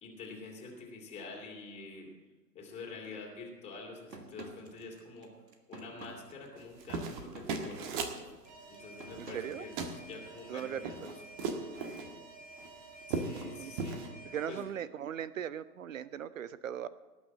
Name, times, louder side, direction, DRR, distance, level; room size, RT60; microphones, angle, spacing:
voice 1, 0.0-2.1 2.5-5.4 5.7-8.0 8.7-11.2 13.1-14.1 14.5-14.6, left 3 dB, 15° left, -2 dB, 2.7 m, -47 dB
sound 1, 4.1-10.4, right 2 dB, 80° right, 1.8 m, -51 dB
sound 2, 6.6-8.2 9.1-9.5 9.8-10.0 10.4-12.1 12.6-12.7 13.0-13.5 13.8-14.1, right 4 dB, 30° right, 1.5 m, -37 dB
Alarm, 8.5-14.7, right 2 dB, 15° right, 2.3 m, -52 dB
voice 2, 9.3-9.6 10.5-11.1 13.6-13.7 14.3-16.9, right 9 dB, 55° right, 17 dB, 0.6 m, -39 dB
18.5 x 6.3 x 7.5 m, 1.2 s
figure-of-eight pair, 120°, 49 cm